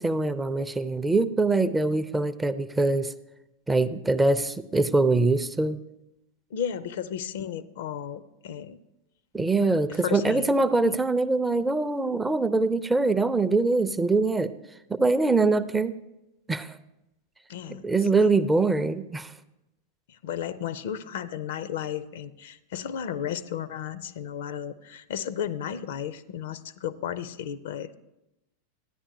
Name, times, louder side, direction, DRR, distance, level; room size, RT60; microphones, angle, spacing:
voice 1, 0.0-3.1 3.7-5.8 9.3-14.5 14.9-16.0 16.5-16.8 17.7-19.3, right 3 dB, 10° right, 12 dB, 0.4 m, -23 dB
voice 2, 6.5-8.8 9.9-10.5 10.9-11.0 17.5-17.9 18.2-18.3 20.1-28.0, left 9 dB, 55° left, 16 dB, 0.4 m, -34 dB
14.0 x 9.8 x 2.7 m, 0.92 s
figure-of-eight pair, 90°, 0 cm